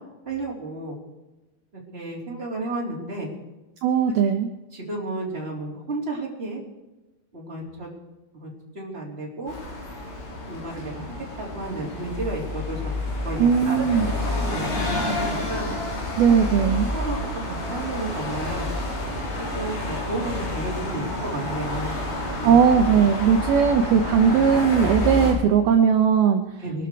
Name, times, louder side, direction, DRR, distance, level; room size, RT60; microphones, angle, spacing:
voice 1, 0.2-1.0 1.9-3.3 4.7-6.6 7.3-7.9 8.3-8.5 8.7-9.5 10.5-12.8 13.2-13.8 14.2-15.7 16.3-17.2 17.7-18.7 19.4-21.9 22.3-22.6 26.6-26.9, right 2 dB, 15° right, -3 dB, 3.0 m, -32 dB
voice 2, 3.8-4.5 13.4-14.1 16.2-16.9 22.4-26.4, right 7 dB, 80° right, 5 dB, 2.2 m, -18 dB
sound 1, 9.5-25.3, left 1 dB, 85° left, 7.1 m, -29 dB
24.0 x 12.5 x 4.7 m, 1.0 s
omnidirectional pair, 5.5 m